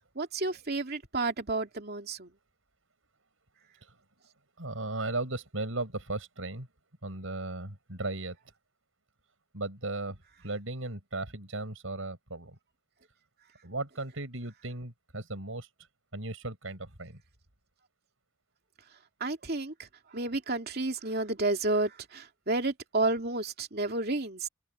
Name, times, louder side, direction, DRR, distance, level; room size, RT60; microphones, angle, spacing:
voice 1, 0.1-2.3 19.2-24.5, right 2 dB, 50° right, 2.7 m, -31 dB
voice 2, 4.6-6.7 7.0-8.4 9.5-12.6 13.6-15.7 16.1-17.2, right 2 dB, 80° right, 5.7 m, -36 dB
head